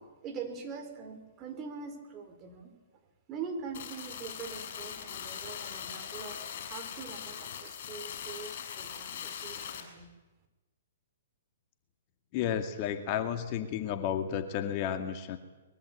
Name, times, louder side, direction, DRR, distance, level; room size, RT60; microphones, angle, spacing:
voice 1, 0.0-2.7 3.3-10.1, right 5 dB, 25° right, 6 dB, 4.7 m, -43 dB
sound 1, 3.7-9.8, left 8 dB, 55° left, 6.5 m, -41 dB
voice 2, 12.3-15.4, left 9 dB, 40° left, 7 dB, 2.2 m, -32 dB
23.0 x 22.0 x 8.6 m, 1.2 s
hypercardioid pair, 130°, 0 cm